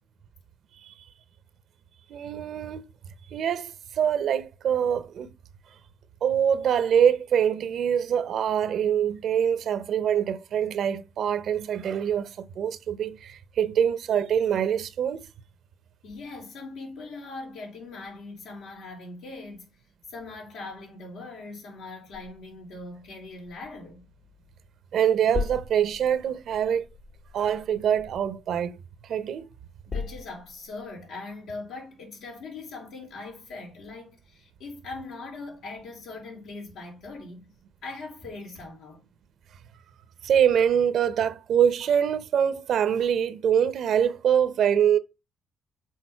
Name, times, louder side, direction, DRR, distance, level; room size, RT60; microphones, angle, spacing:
voice 1, 2.1-2.8 3.3-5.3 6.2-15.2 24.9-26.8 27.3-28.8 29.0-29.5 40.2-45.0, right 8 dB, 70° right, 0.8 m, -24 dB
voice 2, 16.0-19.8 20.1-24.0 29.9-37.5 37.8-39.0, left 3 dB, 85° left, 3.8 m, -41 dB
sound 1, 22.1-24.7 25.0-29.2 29.6-30.9, left 4 dB, 60° left, 1.4 m, -39 dB
6.5 x 4.1 x 5.6 m
cardioid pair, 90°, 0 cm